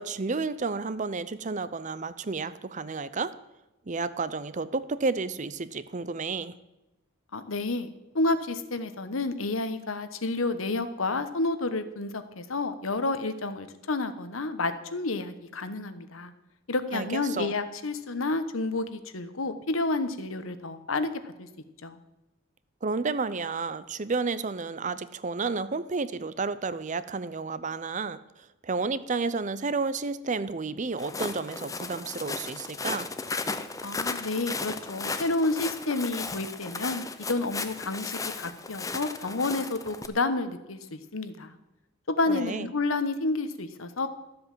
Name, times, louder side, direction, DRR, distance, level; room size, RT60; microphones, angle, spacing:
voice 1, 0.0-3.3 3.9-6.5 16.9-17.5 22.8-33.1 42.3-42.7, right 4 dB, 35° right, 15 dB, 0.6 m, -31 dB
voice 2, 7.3-7.9 8.1-16.3 16.7-21.5 21.8-22.0 33.8-41.6 42.1-44.1, left 2 dB, 80° left, 11 dB, 1.1 m, -30 dB
Walk footsteps, 31.0-40.1, left 4 dB, 15° left, 0.6 m, -35 dB
13.5 x 7.8 x 7.4 m, 1.0 s
head